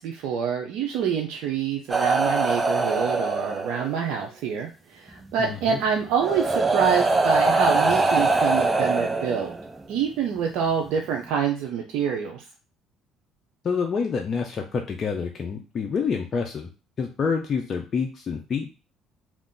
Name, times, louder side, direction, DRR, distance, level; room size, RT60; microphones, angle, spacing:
voice 1, 0.0-9.5 9.9-12.4, right 7 dB, 75° right, 1 dB, 0.5 m, -26 dB
sound 1, 1.9-4.0 5.4-5.5 6.2-9.8 10.9-11.1, right 3 dB, 20° right, 0.4 m, -23 dB
voice 2, 5.4-5.8 13.6-16.7 17.0-18.8, left 5 dB, 45° left, 2 dB, 0.5 m, -27 dB
2.4 x 2.4 x 3.7 m, 0.32 s
supercardioid pair, 90°, 0 cm